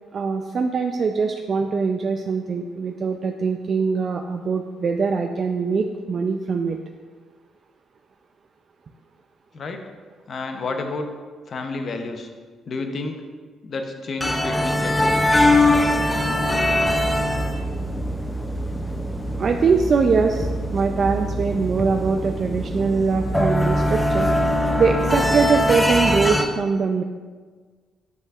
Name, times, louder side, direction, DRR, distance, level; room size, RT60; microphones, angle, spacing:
voice 1, 0.1-6.8 19.4-24.3 24.8-27.0, right 5 dB, 50° right, 4 dB, 0.3 m, -22 dB
voice 2, 10.3-11.1 11.5-12.3 12.7-13.2 13.6-15.5, left 3 dB, 50° left, 5 dB, 0.7 m, -30 dB
sound 1, 14.2-26.4, left 1 dB, 10° left, 0.5 m, -22 dB
8.0 x 5.3 x 2.4 m, 1.5 s
cardioid pair, 90°, 0 cm